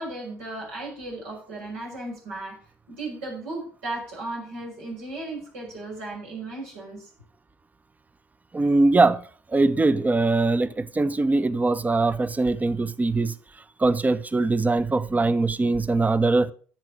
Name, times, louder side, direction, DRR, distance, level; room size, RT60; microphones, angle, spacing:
voice 1, 0.0-2.6 2.9-7.1, right 2 dB, 80° right, 6.0 m, -35 dB
voice 2, 8.5-13.3 13.8-16.5, right 3 dB, 20° right, 0.9 m, -22 dB
10.5 x 7.2 x 6.2 m
hypercardioid pair, 55°, 7 cm